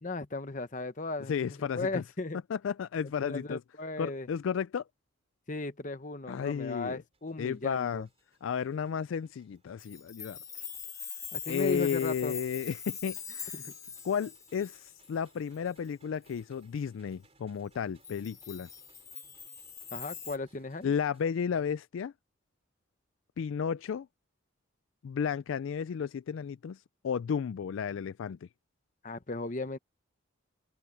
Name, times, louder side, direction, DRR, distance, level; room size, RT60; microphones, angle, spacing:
voice 1, 0.0-2.4 3.2-4.3 5.5-8.1 11.3-12.3 13.5-13.7 19.9-20.9 29.0-29.8, left 2 dB, 40° left, 1.0 m, -36 dB
voice 2, 1.3-2.0 2.5-3.6 4.0-4.8 6.3-7.0 7.4-8.1 8.4-10.6 11.5-13.5 14.0-18.7 20.8-22.1 23.4-24.1 25.0-28.4, left 7 dB, 75° left, 0.3 m, -33 dB
sound 1, 7.1-21.3, right 3 dB, 30° right, 7.4 m, -68 dB
Chime, 9.8-15.9 16.3-16.4 18.0-20.4, left 7 dB, 15° left, 0.9 m, -43 dB
open air
head